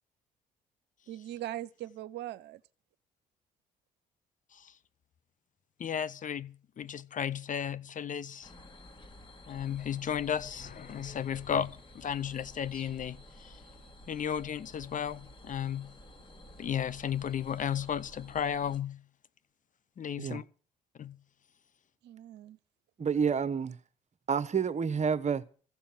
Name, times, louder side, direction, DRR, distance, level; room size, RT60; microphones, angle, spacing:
voice 1, 1.1-2.6 22.0-22.6, right 13 dB, 65° right, 0.8 m, -40 dB
voice 2, 5.8-8.5 9.5-13.6 14.1-15.9 16.6-19.0 20.0-20.4 21.0-21.2, left 8 dB, 40° left, 0.8 m, -34 dB
sound 1, 8.4-18.8, left 1 dB, 25° left, 2.1 m, -52 dB
voice 3, 23.0-23.8 24.3-25.4, right 6 dB, 35° right, 1.1 m, -29 dB
15.0 x 7.0 x 9.0 m
hypercardioid pair, 50°, 19 cm